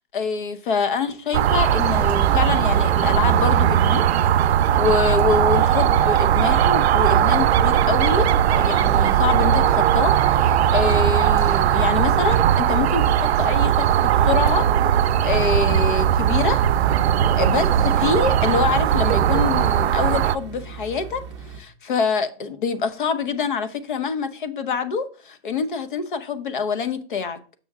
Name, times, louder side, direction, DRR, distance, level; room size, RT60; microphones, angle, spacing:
voice 1, 0.1-4.1 4.8-14.7 15.2-16.6 17.3-21.2 21.5-27.4, left 5 dB, 50° left, 0.9 m, -25 dB
sound 1, 1.3-20.4, right 10 dB, 85° right, 0.5 m, -18 dB
sound 2, 4.3-21.6, right 5 dB, 30° right, 0.5 m, -39 dB
6.9 x 5.9 x 3.5 m
hypercardioid pair, 180°, 31 cm